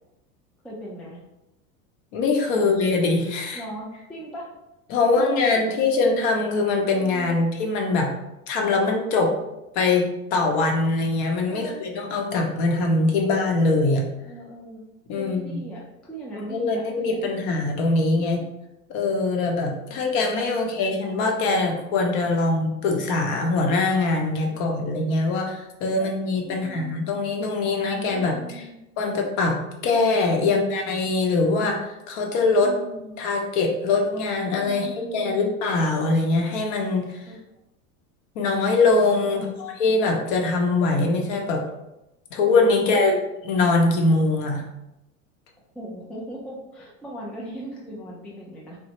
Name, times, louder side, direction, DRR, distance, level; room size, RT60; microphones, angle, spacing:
voice 1, 0.6-1.2 2.5-2.6 3.5-4.5 5.1-5.7 6.8-7.4 9.2-9.6 11.5-11.8 14.2-14.8 15.2-17.3 18.1-18.3 19.9-20.0 20.6-20.8 24.4-24.9 26.0-26.1 26.4-27.0 28.1-28.8 30.4-30.7 32.6-33.1 34.7-35.5 37.3-37.6 39.3-39.7 42.7-43.2 45.7-48.8, right 1 dB, 5° left, -4 dB, 0.3 m, -39 dB
voice 2, 2.1-3.6 4.9-8.1 8.5-9.3 9.7-14.0 15.1-15.6 16.4-18.5 18.9-28.7 29.0-31.8 32.1-32.7 33.2-37.2 38.3-41.6 42.3-43.2 43.4-44.6, left 3 dB, 55° left, 1 dB, 0.8 m, -22 dB
3.1 x 2.1 x 2.9 m, 0.92 s
hypercardioid pair, 90°, 44 cm